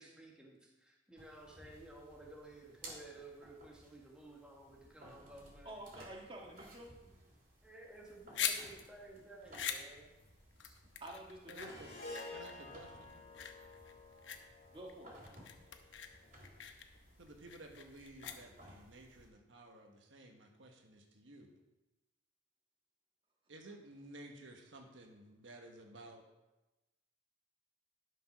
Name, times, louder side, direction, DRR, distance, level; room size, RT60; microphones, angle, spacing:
voice 1, 0.0-5.8 7.6-10.1 10.6-10.8, right 2 dB, 5° right, -2 dB, 1.5 m, -55 dB
sound 1, 1.2-19.3, right 1 dB, 45° right, 3.0 m, -59 dB
voice 2, 5.6-6.9 11.0-11.8 14.7-15.2, right 1 dB, 25° right, -1 dB, 1.6 m, -49 dB
sound 2, 7.9-18.9, left 8 dB, 70° left, 0.8 m, -44 dB
voice 3, 11.5-11.9 12.3-13.2 17.2-21.5 23.5-26.2, right 2 dB, 75° right, 3 dB, 1.3 m, -54 dB
Harp, 11.6-16.0, left 2 dB, 50° left, 2.7 m, -51 dB
11.5 x 5.4 x 5.8 m, 1.0 s
head